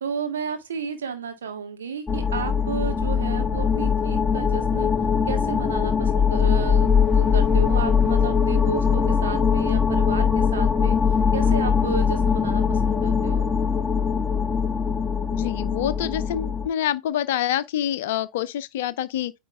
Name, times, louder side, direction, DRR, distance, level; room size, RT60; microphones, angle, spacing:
voice 1, 0.0-4.9 5.3-11.0 11.3-13.5, right 6 dB, 65° right, 1.7 m, -33 dB
sound 1, 2.1-16.7, left 6 dB, 10° left, 0.6 m, -21 dB
voice 2, 15.3-19.3, left 11 dB, 55° left, 0.6 m, -26 dB
9.2 x 3.2 x 3.5 m
figure-of-eight pair, 90°, 0 cm